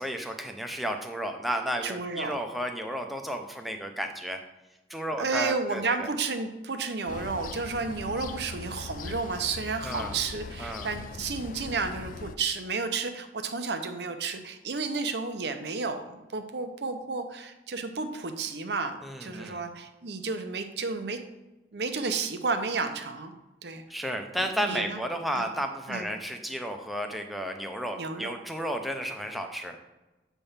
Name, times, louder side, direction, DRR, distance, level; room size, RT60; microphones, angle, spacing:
voice 1, 0.0-4.4 4.9-6.1 9.8-10.1 10.6-10.9 19.0-19.6 23.9-29.8, equal, ahead, 3 dB, 0.6 m, -33 dB
voice 2, 1.8-2.3 5.2-21.2 21.7-23.3 23.6-23.8 24.6-25.0 25.3-25.5 25.9-26.1 28.0-28.3, right 4 dB, 75° right, 7 dB, 0.7 m, -32 dB
sound 1, 7.1-12.4, left 4 dB, 50° left, 0.3 m, -40 dB
8.2 x 3.5 x 5.6 m, 1.1 s
head